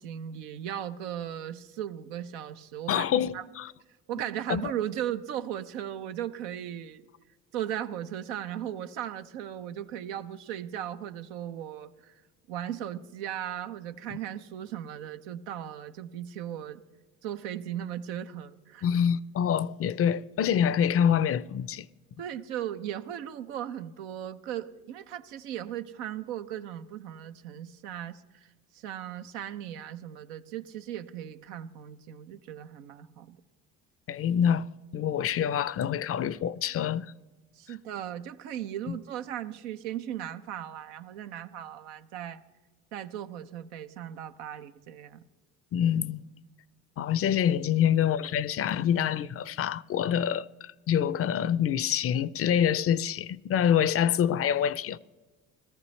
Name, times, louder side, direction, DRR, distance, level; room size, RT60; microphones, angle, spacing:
voice 1, 0.0-3.0 3.3-3.4 4.1-7.0 7.5-12.2 12.5-16.8 17.2-18.9 22.2-33.4 37.6-42.4 42.9-45.2, right 10 dB, 90° right, 0.7 m, -37 dB
voice 2, 2.9-3.7 4.5-4.7 18.8-21.9 34.1-37.1 38.9-39.0 45.7-46.2 47.0-55.0, left 9 dB, 45° left, 0.5 m, -26 dB
18.5 x 14.0 x 3.2 m
supercardioid pair, 70°, 32 cm